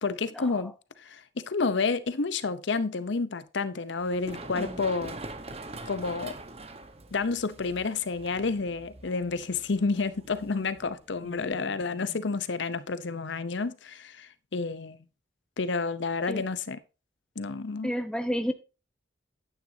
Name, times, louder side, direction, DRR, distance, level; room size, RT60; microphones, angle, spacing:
voice 1, 0.0-5.2 5.9-6.3 7.1-15.0 15.6-16.8 17.4-17.9, left 4 dB, 75° left, 0.7 m, -30 dB
Run, 4.0-11.5, right 2 dB, 30° right, 1.1 m, -44 dB
voice 2, 17.8-18.5, equal, 5° left, 0.8 m, -31 dB
10.0 x 9.2 x 2.7 m
head